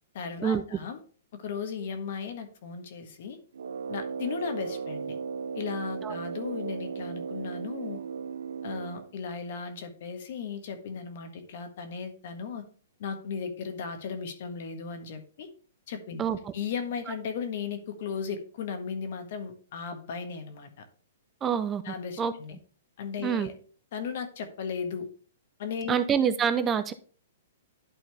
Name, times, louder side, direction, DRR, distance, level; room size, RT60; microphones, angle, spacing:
voice 1, 0.1-1.0 1.3-3.4 3.9-5.2 5.5-8.0 8.6-12.6 13.0-15.5 15.9-16.2 16.5-20.8 21.8-22.6 23.0-23.5 23.9-25.1 25.6-26.0, left 6 dB, 55° left, 8 dB, 1.5 m, -36 dB
Brass instrument, 3.5-9.1, right 6 dB, 90° right, 0.5 m, -36 dB
voice 2, 16.2-16.5 21.4-22.3 23.2-23.5 25.9-26.9, right 7 dB, 15° right, 11 dB, 0.4 m, -27 dB
11.0 x 4.3 x 3.4 m, 0.42 s
hypercardioid pair, 150°, 0 cm